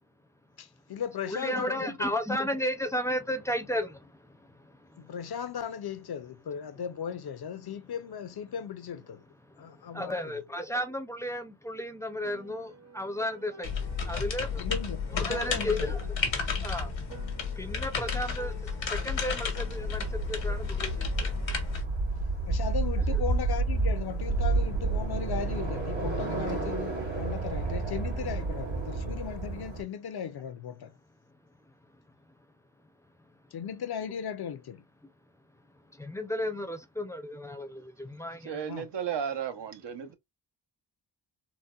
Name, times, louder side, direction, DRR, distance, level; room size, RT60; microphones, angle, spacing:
voice 1, 0.6-1.9 5.0-9.2 9.6-10.3 14.6-15.9 22.5-30.9 33.5-34.8 38.7-38.9, left 8 dB, 60° left, 0.6 m, -37 dB
voice 2, 1.3-5.1 9.4-14.7 15.1-16.0 16.6-17.1 17.6-21.5 23.0-23.2 31.7-31.8 33.2-33.3 35.0-35.1 35.9-38.6, equal, 5° left, 0.5 m, -34 dB
Piano, 12.2-16.7 17.1-21.7, right 4 dB, 35° right, 0.8 m, -51 dB
sound 1, 13.6-21.8, left 5 dB, 90° left, 1.2 m, -32 dB
sound 2, 19.7-29.8, right 3 dB, 90° right, 2.1 m, -30 dB
voice 3, 38.4-40.1, right 8 dB, 65° right, 0.8 m, -34 dB
4.0 x 2.1 x 2.3 m
wide cardioid pair, 105°, 44 cm